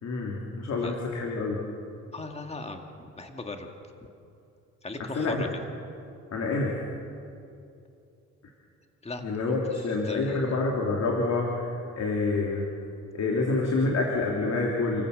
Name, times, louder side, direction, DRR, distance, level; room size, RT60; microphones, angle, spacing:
voice 1, 0.0-1.6 5.0-5.4 6.3-6.8 9.2-12.7 13.1-15.1, left 3 dB, 60° left, -1 dB, 3.2 m, -27 dB
voice 2, 2.1-2.8 3.2-3.7 4.8-5.5 9.0-10.4, left 3 dB, 20° left, 4 dB, 2.0 m, -38 dB
29.0 x 15.0 x 6.7 m, 2.6 s
cardioid pair, 90°, 30 cm